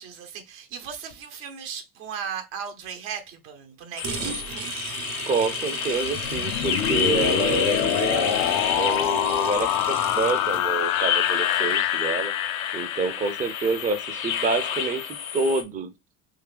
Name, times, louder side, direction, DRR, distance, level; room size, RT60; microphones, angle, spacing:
voice 1, 0.0-5.0, right 7 dB, 75° right, 1.1 m, -37 dB
sound 1, 4.0-15.6, left 8 dB, 90° left, 0.8 m, -30 dB
sound 2, 4.0-10.6, right 8 dB, 60° right, 0.8 m, -36 dB
voice 2, 5.3-8.4 8.8-12.3 12.7-15.9, right 4 dB, 20° right, 0.5 m, -28 dB
sound 3, 6.0-14.0, left 12 dB, 45° left, 0.4 m, -26 dB
3.8 x 2.7 x 3.3 m
hypercardioid pair, 75°, 41 cm